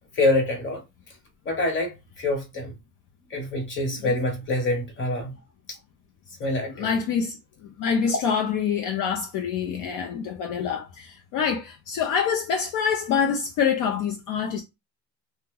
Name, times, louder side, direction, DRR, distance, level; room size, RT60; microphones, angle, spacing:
voice 1, 0.1-0.8 1.4-2.7 3.3-5.3 6.4-6.9, left 2 dB, 35° left, 1.2 m, -25 dB
voice 2, 6.7-7.4 7.8-14.6, left 6 dB, 60° left, 0.6 m, -26 dB
2.9 x 2.2 x 3.6 m
cardioid pair, 150°, 36 cm